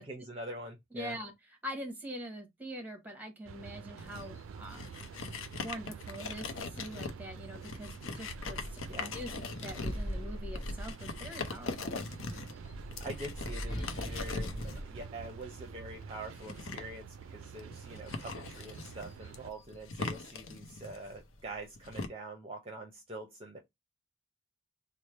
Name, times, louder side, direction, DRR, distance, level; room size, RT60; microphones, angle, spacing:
voice 1, 0.0-1.2 8.9-9.1 13.0-23.6, right 2 dB, 30° right, 0.6 m, -45 dB
voice 2, 0.9-1.3 1.6-4.9 5.6-12.0, equal, 10° right, 0.9 m, -44 dB
sound 1, 3.5-19.5, right 6 dB, 80° right, 0.3 m, -48 dB
sound 2, 4.0-22.1, left 4 dB, 85° left, 0.6 m, -42 dB
sound 3, 7.8-11.5 12.4-16.0, equal, 25° left, 1.5 m, -41 dB
3.2 x 2.0 x 4.1 m
head